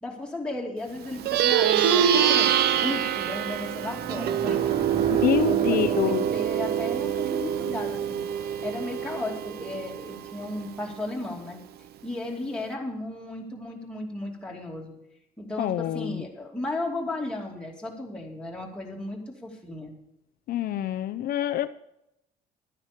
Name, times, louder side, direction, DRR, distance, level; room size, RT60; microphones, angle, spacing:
voice 1, 0.0-4.7 5.5-8.2 8.6-11.6 12.0-14.9 15.4-19.9, left 2 dB, 5° left, -1 dB, 2.6 m, -35 dB
Plucked string instrument, 1.1-10.8, right 10 dB, 70° right, 0.8 m, -25 dB
sound 1, 3.8-8.9, right 3 dB, 35° right, 1.9 m, -38 dB
voice 2, 5.1-6.3 15.6-16.2 20.5-21.7, left 12 dB, 60° left, 11 dB, 0.5 m, -26 dB
12.0 x 9.7 x 5.2 m, 0.83 s
cardioid pair, 110°, 17 cm